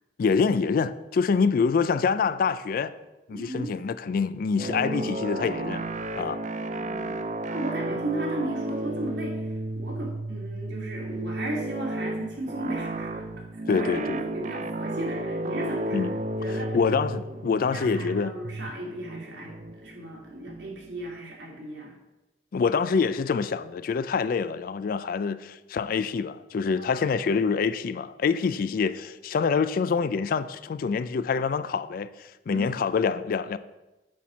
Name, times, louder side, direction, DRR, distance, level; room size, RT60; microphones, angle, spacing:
voice 1, 0.2-2.9 3.3-5.8 6.2-6.4 13.7-14.2 15.9-16.1 16.5-18.3 22.5-33.6, left 5 dB, 50° left, 0.3 m, -26 dB
voice 2, 3.3-3.7 6.7-9.5 9.8-13.3 13.7-16.8 17.3-19.5 19.8-21.9 26.7-27.5 32.5-32.8, right 1 dB, 75° right, 2.2 m, -35 dB
sound 1, 4.6-21.1, right 1 dB, 45° right, 0.5 m, -33 dB
7.2 x 4.3 x 6.0 m
head